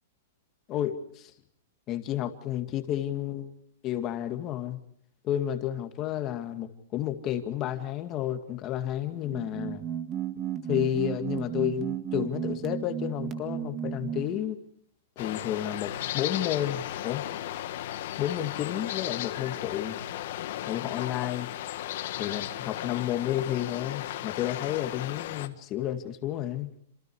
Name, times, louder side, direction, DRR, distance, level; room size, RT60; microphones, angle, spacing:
voice 1, 0.7-1.3 1.9-3.5 3.8-4.8 5.2-9.8 10.7-14.6 15.2-17.2 18.2-20.0 20.7-21.5 22.2-26.7, left 11 dB, 25° left, 7 dB, 2.1 m, -31 dB
sound 1, 9.1-14.4, right 9 dB, 20° right, 1.8 m, -33 dB
sound 2, 15.2-25.5, left 13 dB, 55° left, 1.6 m, -35 dB
28.5 x 27.0 x 4.8 m, 0.63 s
supercardioid pair, 165°, 0 cm